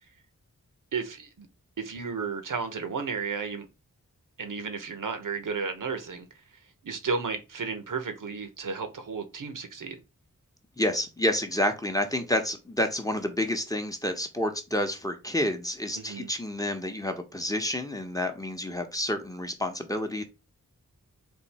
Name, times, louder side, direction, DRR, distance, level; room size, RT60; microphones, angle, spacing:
voice 1, 0.9-1.5 1.8-3.7 4.4-6.3 6.8-10.0 15.9-16.3, right 5 dB, 75° right, 0.8 m, -33 dB
voice 2, 10.8-20.2, left 1 dB, 10° left, 0.8 m, -29 dB
3.6 x 2.6 x 4.1 m
wide cardioid pair, 65°, 32 cm